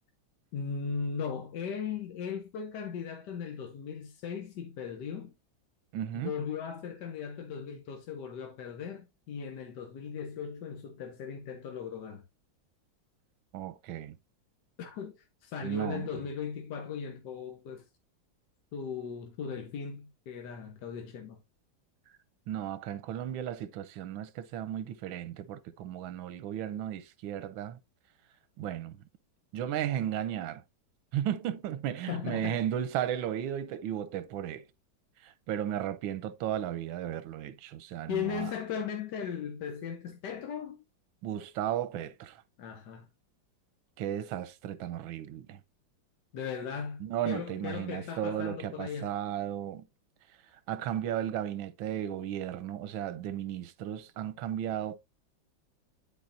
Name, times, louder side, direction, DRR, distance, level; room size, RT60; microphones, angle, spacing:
voice 1, 0.5-5.3 6.1-12.2 14.8-17.8 18.7-21.4 32.0-32.6 38.1-40.8 42.6-43.1 46.3-49.1, left 6 dB, 65° left, 1.3 m, -38 dB
voice 2, 5.9-6.3 13.5-14.2 15.6-16.2 22.5-27.8 28.6-29.0 29.5-30.6 31.1-34.7 35.2-38.5 41.2-42.4 44.0-45.6 47.0-49.9 50.5-55.0, right 10 dB, 85° right, 1.4 m, -35 dB
11.5 x 4.3 x 2.6 m
omnidirectional pair, 2.1 m